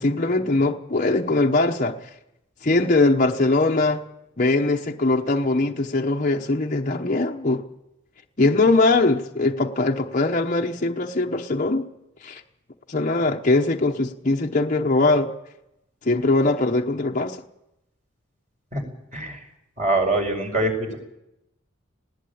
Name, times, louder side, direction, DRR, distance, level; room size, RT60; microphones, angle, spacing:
voice 1, 0.0-2.1 2.6-4.0 4.4-7.6 8.4-11.8 12.2-12.4 12.9-15.3 16.0-17.4, left 2 dB, 40° left, 1.0 m, -21 dB
voice 2, 19.8-21.0, right 2 dB, 35° right, 5.2 m, -23 dB
19.5 x 17.5 x 8.7 m
head